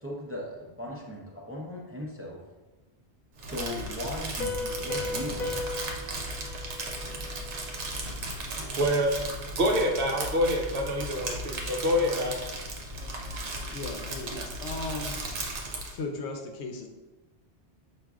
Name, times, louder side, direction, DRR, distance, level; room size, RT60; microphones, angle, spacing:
voice 1, 0.0-2.4 3.4-5.7, left 1 dB, 20° right, -4 dB, 0.4 m, -38 dB
Crumpling crinkling, 3.4-16.0, right 2 dB, 85° right, 1.0 m, -36 dB
Piano, 4.4-7.8, left 3 dB, 50° left, 0.6 m, -36 dB
voice 2, 8.8-9.1 9.6-12.4 13.3-13.6 14.3-14.5, equal, 65° right, 1 dB, 0.7 m, -27 dB
voice 3, 13.7-15.1 15.9-16.9, left 3 dB, 85° left, 3 dB, 0.9 m, -36 dB
5.9 x 2.5 x 2.3 m, 1.2 s
omnidirectional pair, 1.2 m